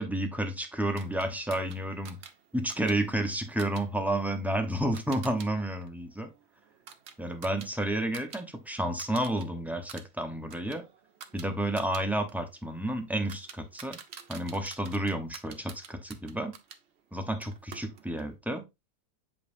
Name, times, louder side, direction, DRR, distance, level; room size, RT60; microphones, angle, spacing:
voice 1, 0.0-2.2 2.5-6.3 7.2-10.8 11.3-14.0 14.3-16.5 17.1-18.6, right 1 dB, ahead, 0.5 m, -31 dB
sound 1, 1.0-5.5 5.8-8.4 8.7-9.4 9.8-16.8 17.4-18.3, right 7 dB, 55° right, 0.9 m, -49 dB
7.4 x 5.3 x 2.6 m
omnidirectional pair, 1.6 m